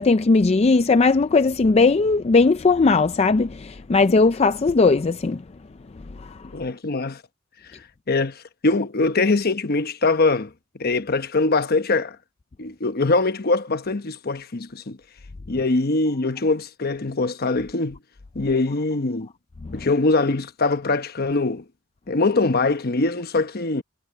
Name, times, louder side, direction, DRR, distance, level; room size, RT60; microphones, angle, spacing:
voice 1, 0.0-5.4 6.2-6.3 19.7-19.8, left 3 dB, 30° left, 0.4 m, -18 dB
voice 2, 6.5-7.2 8.1-10.5 10.8-12.2 12.6-15.0 15.5-18.0 18.3-19.3 19.7-21.6 22.1-23.8, left 3 dB, 50° left, 1.0 m, -22 dB
head